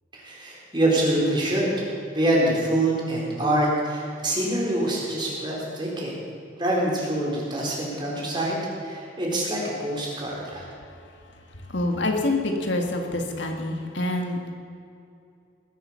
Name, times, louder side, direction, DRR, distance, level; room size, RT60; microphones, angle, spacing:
voice 1, 0.1-6.2 6.6-10.7, right 1 dB, 25° right, -4 dB, 4.1 m, -25 dB
voice 2, 11.7-14.5, left 2 dB, 80° left, 3 dB, 2.0 m, -26 dB
19.5 x 11.0 x 5.8 m, 2.5 s
head